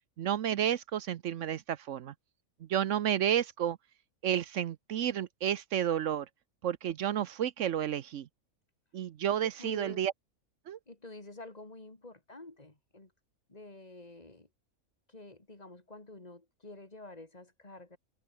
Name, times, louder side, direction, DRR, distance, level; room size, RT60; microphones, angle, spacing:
voice 1, 0.2-2.1 2.7-3.8 4.2-6.3 6.6-8.3 8.9-10.1 10.7-10.8, right 10 dB, 65° right, 0.9 m, -31 dB
voice 2, 9.4-10.0 10.9-13.1 13.5-14.5 15.1-18.0, left 2 dB, 25° left, 3.1 m, -49 dB
open air
omnidirectional pair, 1.5 m